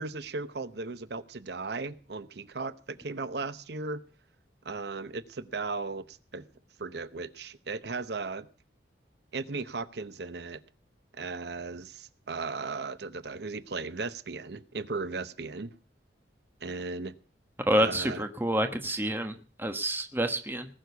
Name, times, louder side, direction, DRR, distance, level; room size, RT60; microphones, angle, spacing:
voice 1, 0.0-4.0 4.6-6.5 6.8-8.5 9.3-10.6 11.1-15.7 16.6-17.1 17.8-18.3, right 3 dB, 65° right, 0.8 m, -36 dB
voice 2, 17.6-20.7, right 1 dB, 10° right, 1.2 m, -28 dB
19.5 x 6.5 x 8.2 m
head